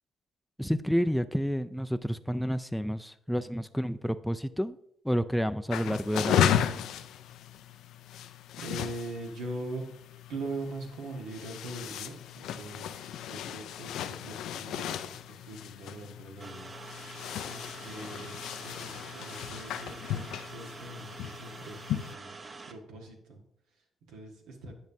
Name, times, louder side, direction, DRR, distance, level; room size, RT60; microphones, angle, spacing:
voice 1, 0.6-4.8 5.0-6.6, equal, ahead, 9 dB, 0.3 m, -30 dB
sound 1, 5.7-22.1, left 10 dB, 80° left, 0.3 m, -35 dB
voice 2, 8.6-9.8 10.3-16.7 17.5-22.4 22.7-23.4 24.1-24.7, right 2 dB, 90° right, 1 dB, 1.3 m, -42 dB
sound 2, 16.4-22.7, right 4 dB, 35° right, 0.7 m, -46 dB
9.3 x 5.1 x 2.7 m, 0.71 s
cardioid pair, 70°, 0 cm